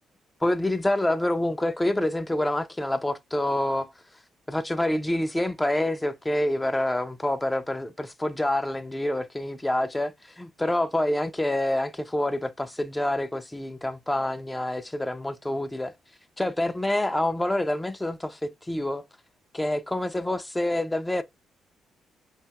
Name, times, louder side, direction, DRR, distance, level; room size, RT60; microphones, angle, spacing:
voice 1, 0.4-3.9 4.5-15.9 16.4-19.0 19.5-21.2, left 1 dB, 10° left, 0.4 m, -27 dB
2.7 x 2.3 x 2.7 m
cardioid pair, 90°, 0 cm